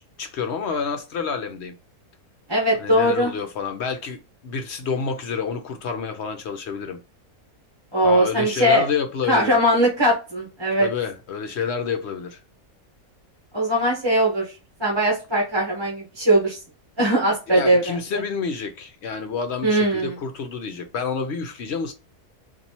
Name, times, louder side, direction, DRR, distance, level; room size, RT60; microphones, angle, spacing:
voice 1, 0.0-1.7 2.7-7.0 8.0-9.6 10.8-12.4 17.5-21.9, left 5 dB, 60° left, 0.7 m, -29 dB
voice 2, 2.5-3.3 7.9-8.8 9.3-10.9 13.5-14.5 14.8-16.6 17.0-17.9 19.6-20.1, right 1 dB, 20° right, 1.0 m, -20 dB
4.1 x 2.6 x 2.8 m
omnidirectional pair, 1.6 m